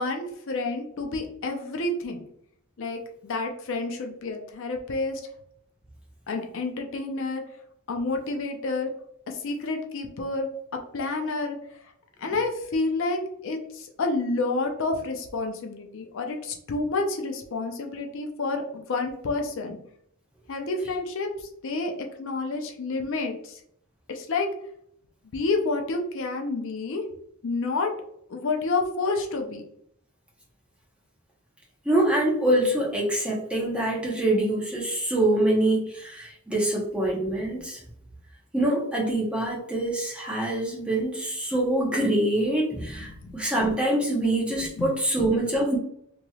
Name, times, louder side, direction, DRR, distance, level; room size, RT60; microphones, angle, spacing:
voice 1, 0.0-2.2 2.8-5.2 6.3-7.4 7.9-8.9 9.3-10.5 10.9-11.6 12.2-19.8 20.5-23.6 24.1-24.5 25.3-27.1 27.4-27.9 28.3-29.6 37.2-37.3 43.2-43.4 44.8-45.0, left 3 dB, 60° left, 3 dB, 0.5 m, -29 dB
voice 2, 31.8-37.8 38.5-45.8, right 1 dB, 5° right, -3 dB, 0.8 m, -25 dB
3.0 x 2.9 x 2.3 m, 0.70 s
head